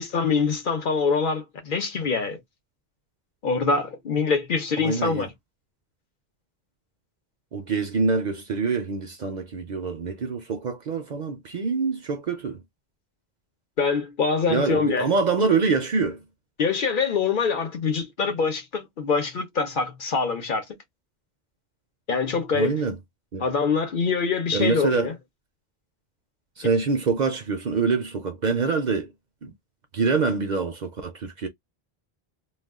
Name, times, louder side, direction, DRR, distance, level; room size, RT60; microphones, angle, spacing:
voice 1, 0.0-2.4 3.4-5.3 13.8-15.1 16.6-20.6 22.1-22.8 23.4-25.1, left 5 dB, 55° left, 0.8 m, -24 dB
voice 2, 4.8-5.3 7.5-12.6 14.5-16.2 22.5-22.9 23.3-23.4 24.5-25.1 26.6-29.1 29.4-29.5 29.9-31.5, right 4 dB, 55° right, 0.6 m, -25 dB
2.4 x 2.2 x 3.5 m
omnidirectional pair, 1.1 m